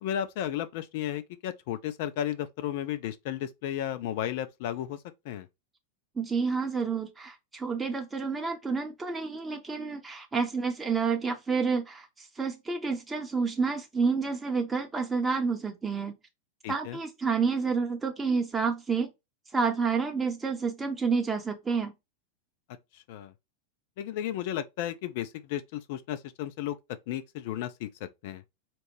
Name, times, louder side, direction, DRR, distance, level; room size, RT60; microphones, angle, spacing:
voice 1, 0.0-5.5 16.6-17.0 22.9-23.3 24.0-26.8 27.1-28.4, left 11 dB, 50° left, 0.4 m, -34 dB
voice 2, 6.2-16.1 16.7-19.1 19.5-21.9, right 5 dB, 15° right, 0.6 m, -29 dB
4.3 x 2.1 x 3.1 m
figure-of-eight pair, 90°, 0 cm